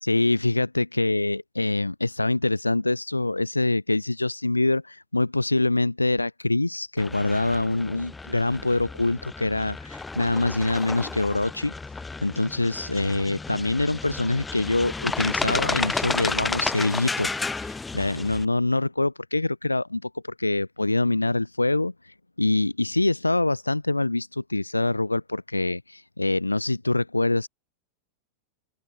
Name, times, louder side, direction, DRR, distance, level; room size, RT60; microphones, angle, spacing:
voice 1, 0.0-11.7 12.2-17.3 17.6-27.5, left 2 dB, 85° left, 1.7 m, -25 dB
sound 1, 7.0-18.5, left 3 dB, 10° left, 2.3 m, -32 dB
open air
figure-of-eight pair, 90°, 0 cm